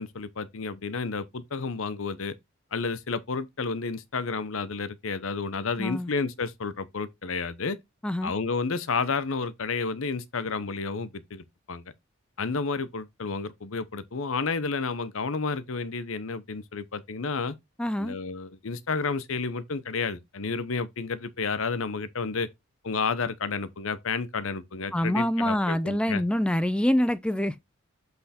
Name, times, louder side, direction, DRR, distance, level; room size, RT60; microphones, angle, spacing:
voice 1, 0.0-2.3 2.7-7.8 8.2-11.8 12.4-17.5 18.0-22.5 22.8-26.2, left 4 dB, 70° left, 0.8 m, -31 dB
voice 2, 5.8-6.1 8.0-8.3 17.8-18.2 24.9-27.6, equal, 5° left, 0.3 m, -25 dB
7.9 x 3.4 x 4.2 m
head